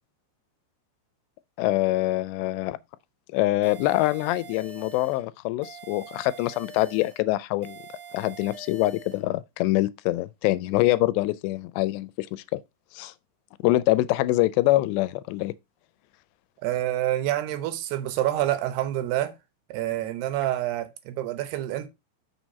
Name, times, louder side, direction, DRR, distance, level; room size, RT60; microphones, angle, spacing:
voice 1, 1.6-2.8 3.3-7.8 8.1-12.6 12.9-13.1 13.6-15.5, left 17 dB, 90° left, 2.8 m, -24 dB
sound 1, 3.6-5.2 5.6-7.2 7.6-9.2, right 5 dB, 60° right, 1.8 m, -44 dB
voice 2, 16.6-19.3 19.7-21.9, right 13 dB, 80° right, 2.8 m, -27 dB
6.3 x 6.2 x 4.0 m
omnidirectional pair, 4.8 m